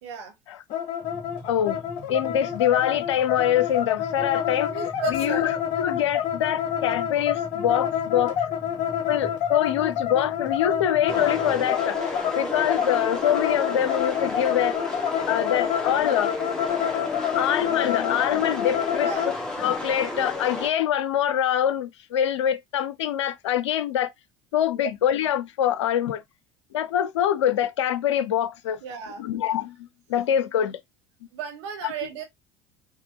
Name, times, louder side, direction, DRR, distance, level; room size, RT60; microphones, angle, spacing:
voice 1, 0.0-0.3 4.6-5.5 19.0-19.4 28.8-29.2 31.3-32.2, right 8 dB, 65° right, 1.5 m, -34 dB
sound 1, 0.7-19.4, left 10 dB, 55° left, 0.9 m, -28 dB
sound 2, 1.0-11.7, right 2 dB, 10° right, 1.6 m, -43 dB
voice 2, 1.5-1.8 2.1-4.8 5.1-8.3 9.1-12.0 12.4-14.8 15.3-16.3 17.3-19.1 19.6-24.1 24.5-26.2 26.7-28.8 29.2-30.8 31.8-31.9, left 10 dB, 75° left, 0.6 m, -24 dB
sound 3, 11.1-20.7, left 1 dB, 5° left, 1.6 m, -32 dB
5.9 x 3.0 x 2.6 m
figure-of-eight pair, 65°, 15 cm